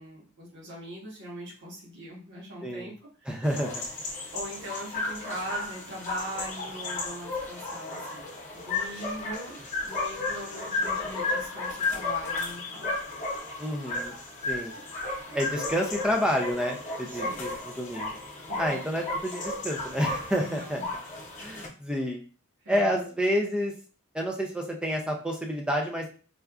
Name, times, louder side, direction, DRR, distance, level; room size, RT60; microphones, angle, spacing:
voice 1, 0.0-3.4 4.3-8.3 8.5-12.9 17.1-17.4 18.5-18.8 20.4-20.9 22.6-23.0, equal, 55° right, -2 dB, 1.2 m, -41 dB
voice 2, 2.6-2.9 3.3-3.8 13.6-14.2 14.5-14.7 15.3-18.2 18.6-20.8 21.4-22.2 22.7-23.7 24.1-26.1, equal, 5° right, 1 dB, 0.4 m, -29 dB
sound 1, 3.4-21.7, left 3 dB, 35° left, 0.9 m, -34 dB
4.3 x 2.5 x 2.3 m, 0.38 s
head